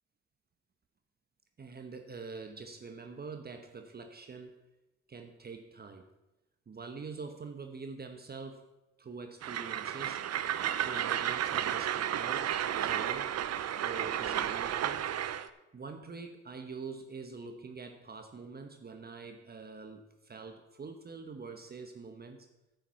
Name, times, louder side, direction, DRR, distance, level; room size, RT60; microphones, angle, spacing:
voice 1, 1.6-4.6 5.1-6.1 6.7-8.7 9.0-10.2 10.8-13.4 13.8-15.1 15.7-22.5, right 4 dB, 30° right, 6 dB, 1.0 m, -45 dB
Train, 9.4-15.5, right 10 dB, 55° right, 0.7 m, -32 dB
9.8 x 9.2 x 5.8 m, 1.0 s
cardioid pair, 90°, 30 cm